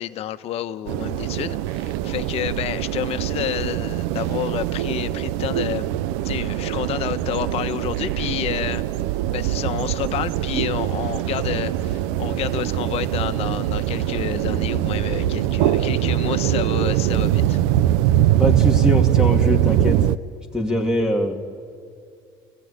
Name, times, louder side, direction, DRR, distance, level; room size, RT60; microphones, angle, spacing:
voice 1, 0.0-5.9 6.2-8.8 9.3-17.6, left 12 dB, 60° left, 10 dB, 1.2 m, -29 dB
sound 1, 0.9-20.2, right 12 dB, 80° right, 0.6 m, -22 dB
voice 2, 18.4-20.0 20.5-21.5, equal, 5° right, 1 dB, 2.6 m, -22 dB
30.0 x 16.0 x 9.9 m, 2.4 s
supercardioid pair, 85°, 12 cm